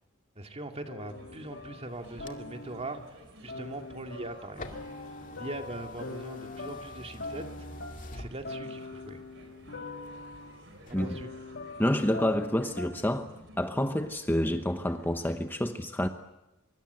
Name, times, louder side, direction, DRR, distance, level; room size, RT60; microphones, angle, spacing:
voice 1, 0.4-4.8 5.4-7.7 8.1-9.2 11.0-11.3, right 2 dB, 30° right, 5 dB, 2.3 m, -41 dB
sound 1, 0.8-3.1 3.5-13.2, left 3 dB, 60° left, 2.5 m, -43 dB
sound 2, 1.0-15.5, right 1 dB, 65° right, 4.7 m, -53 dB
sound 3, 1.9-9.0 9.4-10.4 10.8-11.2, left 2 dB, 40° left, 2.1 m, -47 dB
voice 2, 11.8-13.3 13.6-16.1, left 1 dB, 10° left, 7 dB, 0.9 m, -28 dB
24.5 x 23.5 x 8.1 m, 0.97 s
head